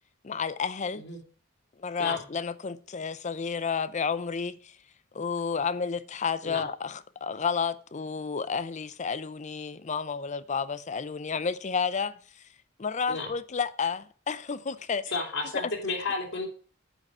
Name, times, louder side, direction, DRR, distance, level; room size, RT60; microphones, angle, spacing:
voice 1, 0.2-1.0 1.8-4.8 5.1-12.4 12.8-15.0 15.5-15.7, left 5 dB, 35° left, 0.5 m, -31 dB
voice 2, 15.1-16.5, left 3 dB, 65° left, 2.6 m, -32 dB
9.8 x 5.0 x 7.7 m
head